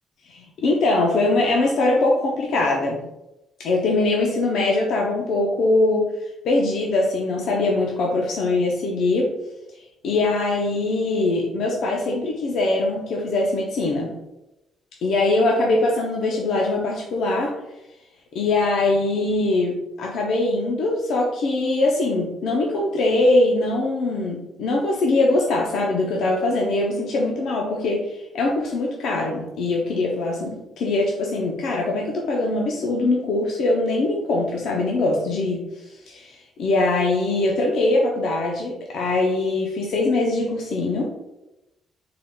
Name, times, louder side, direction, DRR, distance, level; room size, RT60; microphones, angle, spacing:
voice 1, 0.2-3.0 3.6-9.3 9.7-14.1 15.0-17.6 18.3-41.1, left 2 dB, 75° left, -1 dB, 0.5 m, -22 dB
3.8 x 3.5 x 2.2 m, 0.93 s
cardioid pair, 90°, 0 cm